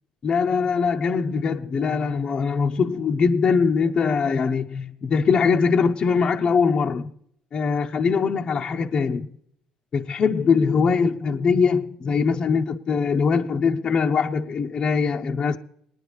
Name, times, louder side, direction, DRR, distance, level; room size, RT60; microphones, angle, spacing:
voice 1, 0.2-7.1 7.5-9.3 9.9-15.6, left 5 dB, 40° left, 0.6 m, -22 dB
20.0 x 9.9 x 3.4 m
supercardioid pair, 90°, 2 cm